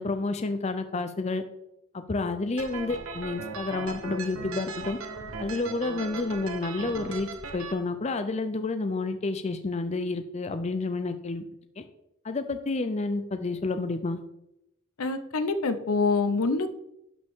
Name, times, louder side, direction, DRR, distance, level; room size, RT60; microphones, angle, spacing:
voice 1, 0.0-1.4 1.9-5.0 5.4-11.4 11.8-11.9 12.2-14.2, left 3 dB, 30° left, 9 dB, 0.5 m, -30 dB
sound 1, 2.6-7.7, right 4 dB, 70° right, 1.0 m, -38 dB
voice 2, 15.0-16.7, left 3 dB, 80° left, 10 dB, 0.7 m, -25 dB
11.5 x 5.3 x 3.6 m, 0.84 s
head